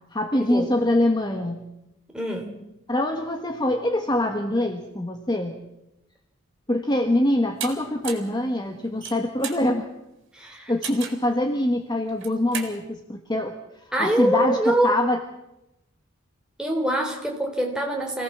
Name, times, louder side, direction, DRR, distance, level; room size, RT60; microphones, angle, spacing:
voice 1, 0.1-1.6 2.9-5.6 6.7-9.9 10.7-13.5 13.8-15.2, left 1 dB, 20° left, 4 dB, 1.3 m, -24 dB
voice 2, 2.1-2.5 10.3-10.7 13.9-15.0 16.6-18.2, right 1 dB, 5° right, 1 dB, 3.6 m, -24 dB
sound 1, 7.6-7.7 8.0-8.3 8.9-9.6 10.8-11.3 12.1-12.7, right 7 dB, 60° right, 3.9 m, -33 dB
26.0 x 17.5 x 7.3 m, 0.93 s
head